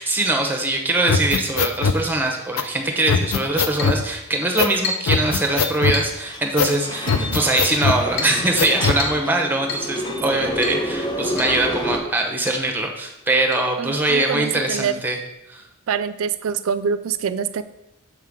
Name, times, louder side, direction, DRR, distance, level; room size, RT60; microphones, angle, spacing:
voice 1, 0.0-15.2 15.5-15.6, right 2 dB, 10° right, 3 dB, 0.8 m, -22 dB
sound 1, 1.1-2.0 2.6-2.7 3.1-4.0 4.6-4.8 5.1-6.0 6.6-6.7 7.1-8.0 8.6-9.0, left 5 dB, 65° left, 0.4 m, -21 dB
Chink clink, 3.8-4.0 4.8-5.2 5.9-6.2 7.1-7.3 8.2-8.4 9.0-9.3 9.7-9.9 10.6-10.8 11.4-11.6 11.8-11.9 12.5-12.6 13.5-13.6, left 3 dB, 50° left, 1.1 m, -29 dB
sound 2, 5.2-12.0, left 1 dB, 20° left, 0.6 m, -30 dB
voice 2, 13.8-15.0 15.9-17.6, right 7 dB, 70° right, 12 dB, 0.4 m, -25 dB
7.2 x 5.6 x 3.6 m, 0.90 s
head